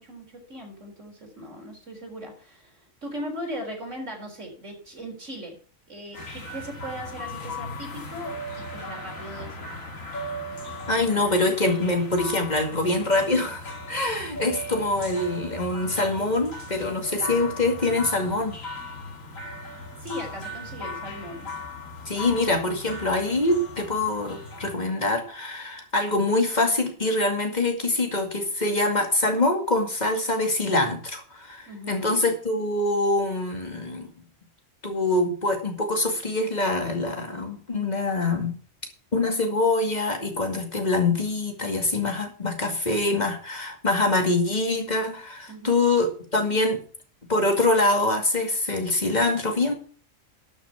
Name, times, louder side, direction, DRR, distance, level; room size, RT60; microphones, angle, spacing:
voice 1, 0.0-5.6 5.9-9.6 20.0-21.5 31.7-32.3 45.5-45.8, equal, 65° right, 2 dB, 4.3 m, -38 dB
sound 1, 6.1-24.7, left 1 dB, 90° left, 2.7 m, -38 dB
voice 2, 10.9-18.5 22.1-34.1 34.8-38.6 39.1-46.8 47.3-49.7, left 2 dB, 35° left, 4 dB, 2.3 m, -24 dB
12.0 x 5.8 x 7.0 m, 0.42 s
omnidirectional pair, 1.4 m